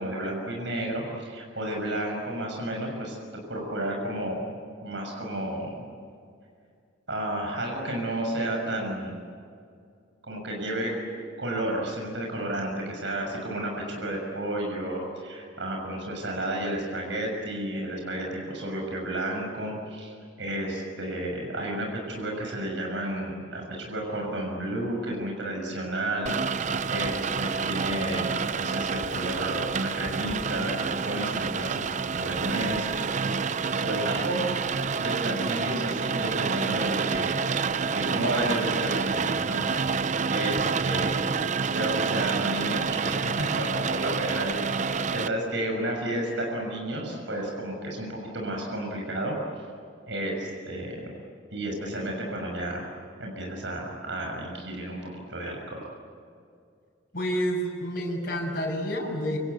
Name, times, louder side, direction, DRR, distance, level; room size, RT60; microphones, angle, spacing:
voice 1, 0.0-3.1 3.5-4.4 4.8-5.8 7.1-9.2 10.2-10.9 11.4-28.2 28.6-31.8 32.2-32.9 33.7-37.4 37.9-41.3 41.6-49.3 50.1-51.1 51.5-52.9 53.2-55.0 55.3-55.8, right 1 dB, 70° right, 1 dB, 6.6 m, -32 dB
Rain, 26.3-45.3, right 5 dB, 40° right, 0.6 m, -28 dB
voice 2, 57.1-59.4, equal, 50° left, -4 dB, 6.8 m, -29 dB
28.0 x 26.0 x 8.2 m, 2.3 s
head